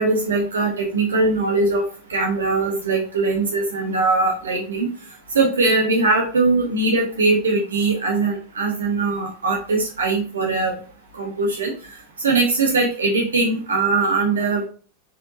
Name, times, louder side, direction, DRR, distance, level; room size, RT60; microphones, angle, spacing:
voice 1, 0.0-1.8 2.1-4.9 5.3-10.7 11.1-11.7 12.2-14.6, right 3 dB, 70° right, 0 dB, 1.1 m, -21 dB
5.4 x 3.7 x 2.6 m, 0.40 s
figure-of-eight pair, 90°, 0 cm